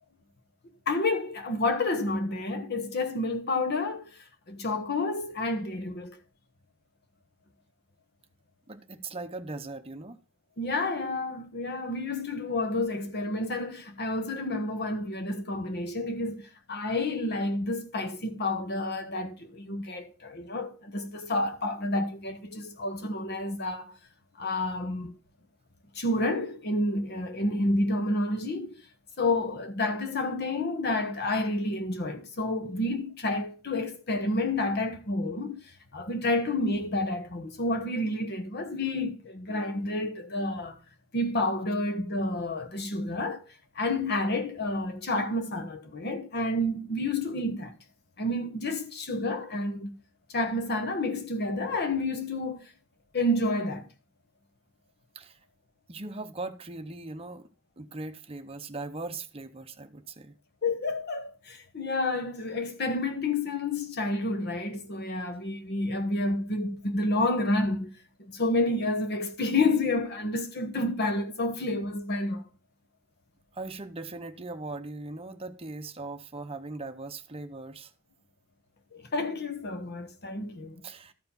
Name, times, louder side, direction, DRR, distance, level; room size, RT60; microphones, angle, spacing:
voice 1, 0.9-4.1 4.5-6.2 10.6-23.9 24.4-25.1 25.9-28.8 29.2-35.6 35.9-40.8 41.1-43.4 43.7-47.7 48.2-49.9 50.3-52.6 53.1-53.8 60.6-67.9 68.2-72.4 78.9-80.8, left 2 dB, 55° left, 1.1 m, -29 dB
voice 2, 8.7-10.2 55.1-55.4 55.9-57.5 57.8-60.3 73.5-77.9 80.8-81.1, right 3 dB, 30° right, 0.8 m, -39 dB
13.0 x 4.7 x 5.5 m
head